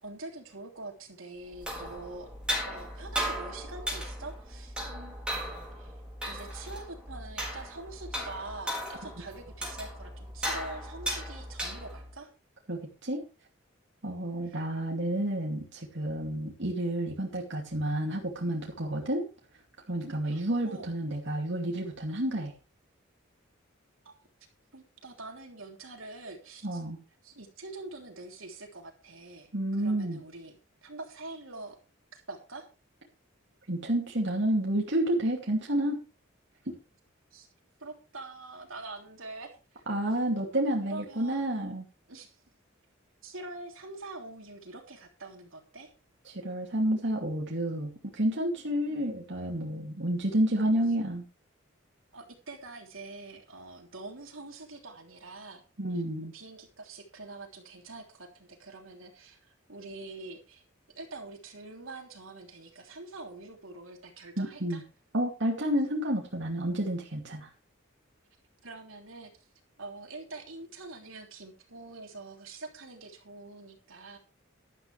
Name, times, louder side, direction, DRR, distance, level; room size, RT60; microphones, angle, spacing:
voice 1, 0.0-2.3 2.6-5.4 5.8-6.0 6.2-12.3 14.4-14.6 20.2-20.9 24.0-24.1 24.7-26.8 27.2-29.5 29.8-30.5 30.8-31.8 32.1-32.7 37.3-37.5 37.8-39.8 40.8-41.5 42.1-42.4 43.2-45.9 48.9-49.1 52.1-55.6 55.9-56.0 56.3-60.6 61.0-64.8 68.6-69.3 69.8-74.2, right 2 dB, 80° right, 2 dB, 3.3 m, -45 dB
sound 1, 1.4-12.1, equal, 5° right, 4.6 m, -37 dB
voice 2, 12.7-13.2 14.0-19.2 19.9-22.5 26.6-27.0 29.5-30.2 33.7-36.0 36.7-36.8 39.9-41.8 46.3-51.2 55.8-56.3 64.4-64.8 65.1-67.5, right 1 dB, 60° right, 0 dB, 2.6 m, -30 dB
12.5 x 12.0 x 3.3 m, 0.31 s
head